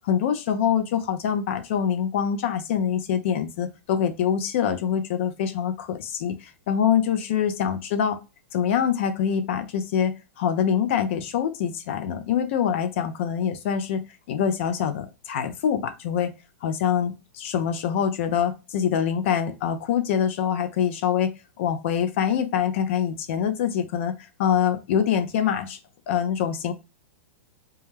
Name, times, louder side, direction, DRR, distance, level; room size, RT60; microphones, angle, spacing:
voice 1, 0.1-8.2 8.5-14.0 14.3-16.3 16.6-21.3 21.6-25.8 26.1-26.7, left 8 dB, 55° left, 8 dB, 0.5 m, -25 dB
2.2 x 2.1 x 3.2 m, 0.27 s
hypercardioid pair, 110°, 8 cm